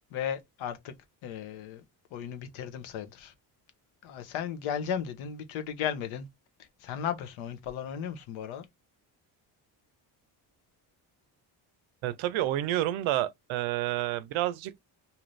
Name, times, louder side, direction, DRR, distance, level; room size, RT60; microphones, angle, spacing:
voice 1, 0.1-0.9 1.2-1.8 2.1-3.3 4.0-6.3 6.6-8.7, left 8 dB, 85° left, 0.9 m, -35 dB
voice 2, 12.0-14.7, right 14 dB, 80° right, 0.6 m, -29 dB
2.8 x 2.5 x 3.0 m
cardioid pair, 85°, 47 cm